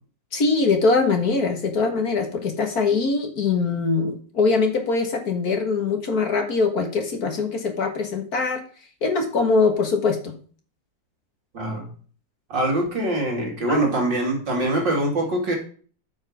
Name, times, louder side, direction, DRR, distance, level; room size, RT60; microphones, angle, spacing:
voice 1, 0.3-8.6 9.0-10.3 13.7-13.8, left 4 dB, 55° left, 5 dB, 2.0 m, -22 dB
voice 2, 11.5-11.9 12.5-15.6, right 1 dB, 70° right, -1 dB, 3.8 m, -23 dB
9.1 x 5.5 x 6.1 m, 0.42 s
omnidirectional pair, 2.0 m